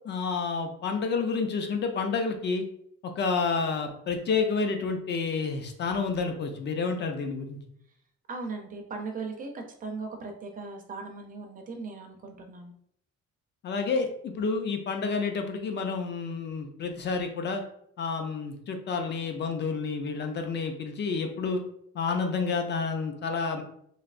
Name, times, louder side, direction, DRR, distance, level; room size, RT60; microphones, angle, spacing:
voice 1, 0.0-2.6 3.0-7.6 13.6-17.6 18.0-21.6 21.9-23.6, left 4 dB, 40° left, 5 dB, 0.4 m, -29 dB
voice 2, 8.3-12.7, right 4 dB, 30° right, 3 dB, 0.4 m, -38 dB
3.2 x 2.6 x 2.4 m, 0.69 s
cardioid pair, 170°, 29 cm